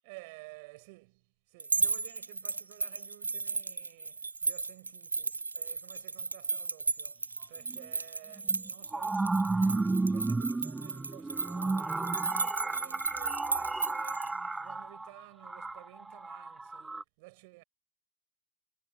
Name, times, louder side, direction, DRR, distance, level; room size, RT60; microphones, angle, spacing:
voice 1, 0.0-17.6, right 27 dB, 50° right, 7.7 m, -54 dB
sound 1, 1.6-14.3, right 4 dB, 80° right, 0.6 m, -34 dB
sound 2, 7.7-7.8 8.5-17.0, right 3 dB, 10° right, 1.2 m, -33 dB
figure-of-eight pair, 90°, 0 cm